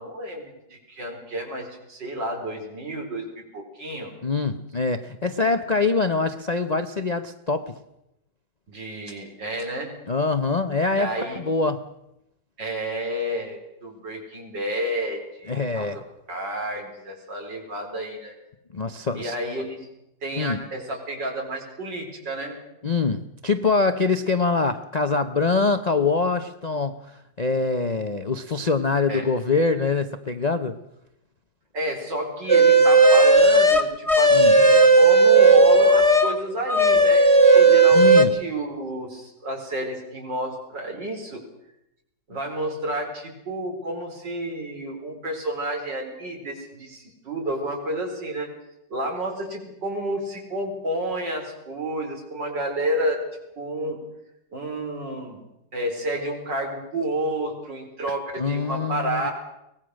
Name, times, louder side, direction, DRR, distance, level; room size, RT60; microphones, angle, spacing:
voice 1, 0.0-4.1 8.7-9.9 11.0-11.4 12.6-16.0 16.3-18.3 19.1-19.9 20.2-22.5 29.1-29.3 31.7-41.4 42.3-48.5 48.9-53.2 53.6-54.0 54.5-55.4 55.7-59.3, right 1 dB, 75° right, 2 dB, 4.7 m, -30 dB
voice 2, 4.2-7.7 10.1-11.8 15.5-16.0 18.7-19.3 20.4-20.6 22.8-30.8 34.3-34.6 37.9-38.4 58.4-59.3, left 4 dB, 45° left, 9 dB, 0.5 m, -24 dB
sound 1, 32.5-36.3 36.7-38.2, right 2 dB, 20° right, 1.6 m, -14 dB
23.5 x 19.0 x 6.4 m, 0.86 s
omnidirectional pair, 2.0 m